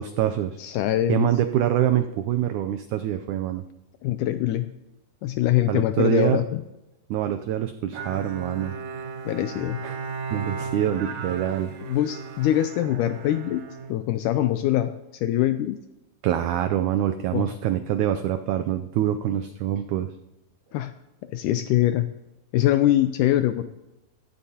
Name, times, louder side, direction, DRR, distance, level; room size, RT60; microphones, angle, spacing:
voice 1, 0.0-0.6 1.1-3.6 5.7-6.4 7.1-8.7 9.8-10.0 10.3-11.7 16.2-20.1, right 11 dB, 90° right, 8 dB, 1.7 m, -25 dB
voice 2, 0.6-1.3 4.0-4.7 5.2-6.6 9.2-9.8 11.8-13.6 13.9-15.8 17.3-17.5 20.7-20.9 21.2-22.1 22.5-23.8, left 13 dB, 85° left, 10 dB, 1.8 m, -23 dB
Bowed string instrument, 7.9-14.6, right 5 dB, 65° right, 1.9 m, -35 dB
15.5 x 13.0 x 2.8 m, 0.97 s
omnidirectional pair, 4.1 m